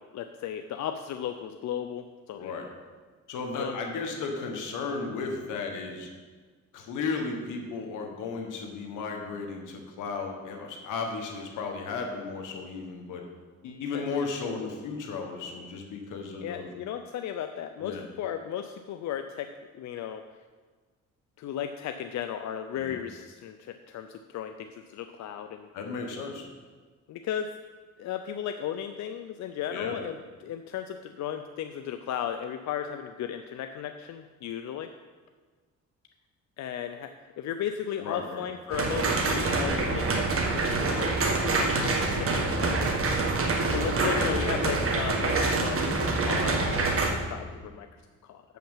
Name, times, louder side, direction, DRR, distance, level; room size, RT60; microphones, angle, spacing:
voice 1, 0.0-2.5 3.5-3.8 13.9-14.1 16.4-20.3 21.4-25.7 27.1-27.5 28.0-34.9 36.6-40.2 41.0-43.0 43.7-47.0 47.3-48.4, left 9 dB, 65° left, 7 dB, 0.5 m, -35 dB
voice 2, 2.3-2.7 3.3-6.1 6.7-13.2 13.6-16.7 17.8-18.0 22.8-23.0 25.7-26.5 29.7-30.0 38.0-38.4 44.0-44.6, left 4 dB, 90° left, 3 dB, 1.5 m, -34 dB
sound 1, 38.7-47.1, right 3 dB, 45° right, 1.6 m, -26 dB
7.1 x 5.9 x 7.3 m, 1.4 s
cardioid pair, 90°, 30 cm